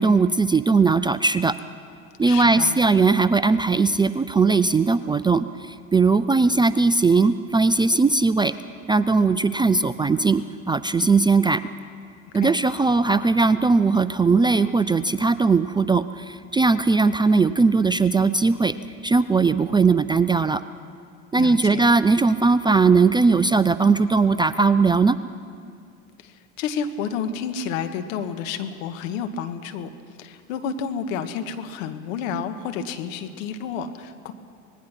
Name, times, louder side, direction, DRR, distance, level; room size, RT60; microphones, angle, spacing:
voice 1, 0.0-1.6 2.2-8.5 8.9-11.6 12.3-18.7 19.0-20.6 21.3-25.2, right 4 dB, 10° right, 13 dB, 0.4 m, -19 dB
voice 2, 2.3-2.8 12.4-12.6 21.3-21.9 26.2-29.9 30.2-34.3, left 6 dB, 70° left, 8 dB, 1.8 m, -30 dB
25.0 x 19.5 x 6.0 m, 2.3 s
hypercardioid pair, 80°, 41 cm